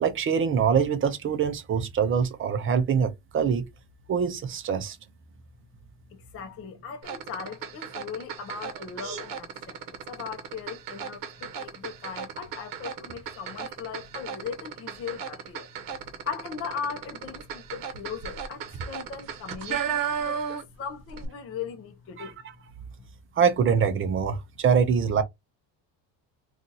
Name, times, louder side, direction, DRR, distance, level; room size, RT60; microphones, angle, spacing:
voice 1, 0.0-3.7 4.1-5.0 22.2-22.3 23.4-25.2, right 6 dB, 30° right, 0.5 m, -24 dB
voice 2, 6.1-9.8 10.1-15.7 16.3-22.4, left 6 dB, 30° left, 0.6 m, -38 dB
sound 1, 7.0-20.8 21.1-21.3, right 7 dB, 50° right, 0.9 m, -35 dB
2.7 x 2.4 x 3.9 m
cardioid pair, 155°, 44 cm